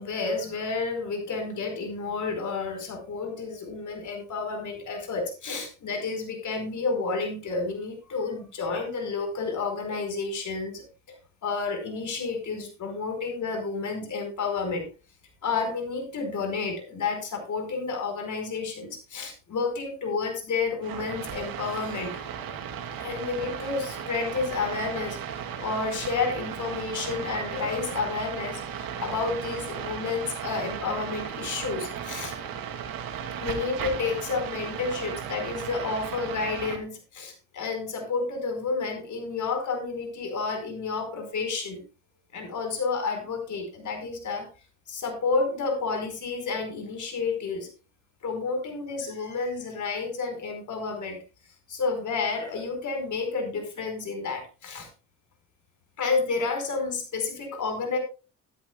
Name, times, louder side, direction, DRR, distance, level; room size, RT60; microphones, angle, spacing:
voice 1, 0.0-14.9 15.4-22.1 23.0-25.2 25.6-32.4 33.4-41.8 42.3-44.5 44.9-47.7 48.2-51.2 51.7-54.9 56.0-58.0, left 4 dB, 60° left, 5 dB, 4.6 m, -30 dB
sound 1, 20.8-36.8, right 8 dB, 80° right, 2.3 m, -36 dB
13.0 x 13.0 x 2.3 m, 0.31 s
cardioid pair, 90°, 34 cm